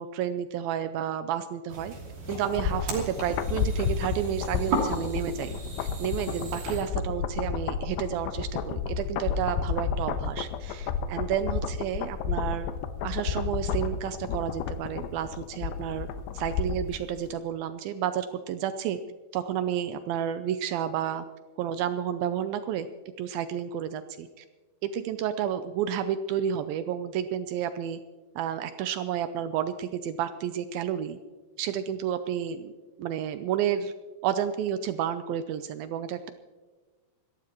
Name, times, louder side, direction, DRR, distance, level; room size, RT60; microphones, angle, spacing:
voice 1, 0.0-1.9 2.3-12.7 13.0-16.1 16.3-19.0 19.3-21.3 21.6-22.9 23.2-24.5 24.8-28.0 28.4-31.2 31.6-32.7 33.0-33.9 34.2-36.3, right 9 dB, 85° right, 10 dB, 2.1 m, -31 dB
sound 1, 1.7-6.8, right 2 dB, 50° right, 4.2 m, -35 dB
sound 2, 2.3-17.0 17.3-17.4, left 6 dB, 90° left, 2.9 m, -31 dB
26.0 x 13.5 x 3.0 m, 1.3 s
omnidirectional pair, 4.8 m